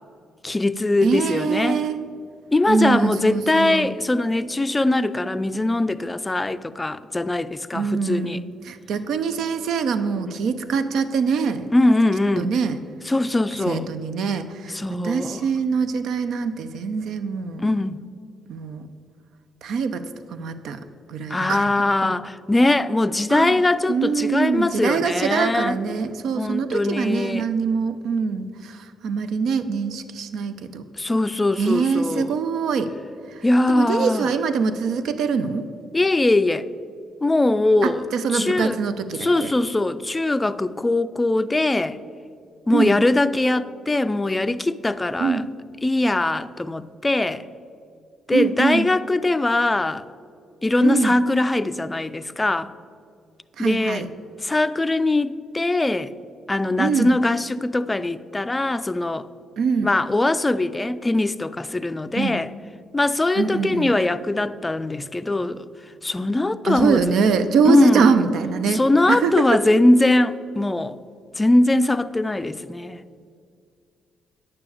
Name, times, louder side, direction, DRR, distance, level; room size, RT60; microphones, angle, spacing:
voice 1, 0.4-1.9 2.5-8.4 11.7-12.5 13.1-13.9 14.7-15.4 17.6-18.0 21.3-25.8 26.4-27.5 30.9-32.4 33.4-34.3 35.9-36.7 37.2-38.0 38.3-38.8 39.2-42.0 42.7-45.4 45.8-47.4 48.3-50.0 50.6-52.7 53.6-54.1 54.4-56.1 56.5-59.3 59.8-62.5 62.9-65.6 66.0-67.1 67.6-68.2 68.7-71.0 71.4-73.0, left 2 dB, 15° left, 0.4 m, -21 dB
voice 2, 1.0-2.0 2.7-3.9 7.7-11.7 12.4-12.8 13.7-14.8 15.0-17.6 18.5-18.8 19.6-20.0 20.3-20.8 21.1-21.7 23.3-23.6 23.9-30.8 31.6-32.9 33.7-35.7 37.8-39.5 42.7-42.9 45.2-45.4 48.3-48.9 50.8-51.2 53.6-54.1 56.8-57.1 59.6-59.9 62.1-62.4 63.4-63.9 66.6-68.8 69.1-69.5, right 5 dB, 75° right, 0.6 m, -23 dB
9.7 x 6.8 x 7.0 m
cardioid pair, 90°, 0 cm